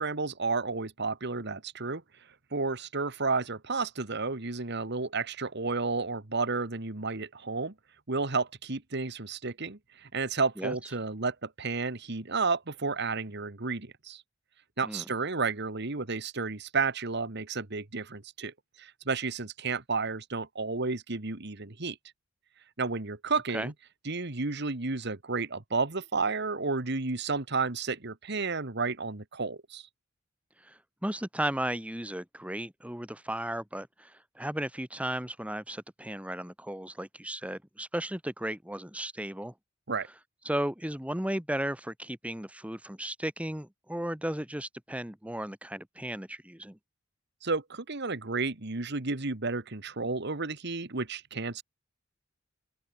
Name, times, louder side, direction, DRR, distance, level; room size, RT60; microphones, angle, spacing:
voice 1, 0.0-2.0 2.5-7.7 8.1-14.2 14.8-22.0 22.8-23.7 24.1-29.9 39.9-40.1 47.4-51.6, right 4 dB, 55° right, 1.7 m, -32 dB
voice 2, 30.6-39.5 40.5-46.8, right 1 dB, 5° right, 2.0 m, -35 dB
open air
head